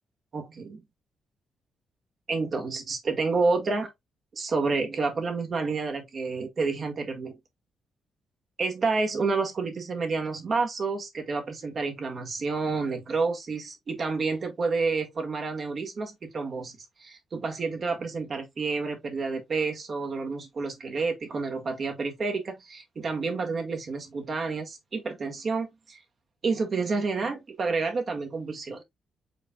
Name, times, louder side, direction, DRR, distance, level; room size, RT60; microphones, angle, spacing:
voice 1, 0.3-0.8 2.3-3.9 4.3-7.4 8.6-26.0 26.4-28.8, right 4 dB, 45° right, 1.7 m, -29 dB
5.1 x 4.3 x 2.3 m
cardioid pair, 95°, 0 cm